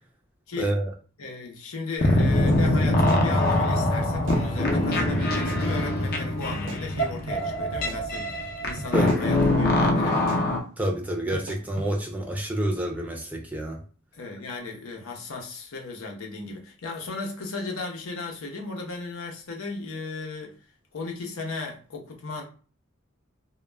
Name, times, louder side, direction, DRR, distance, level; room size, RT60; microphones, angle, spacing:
voice 1, 0.6-0.9 8.9-9.2 10.8-13.8, right 1 dB, 10° right, 0.4 m, -28 dB
voice 2, 1.2-10.5 14.1-20.5 20.9-22.4, left 3 dB, 85° left, 0.7 m, -36 dB
sound 1, 2.0-10.6, left 1 dB, 50° left, 0.6 m, -23 dB
sound 2, 2.5-2.6 2.9-3.7 4.0-4.4 4.9-5.0 5.3-5.6 6.5-7.4 7.7-8.5 8.8-9.2 9.7-9.8 10.1-10.4 11.3-11.9, right 1 dB, 60° right, 0.5 m, -39 dB
sound 3, 4.3-9.8, left 2 dB, 20° left, 0.9 m, -38 dB
2.2 x 2.1 x 3.3 m
head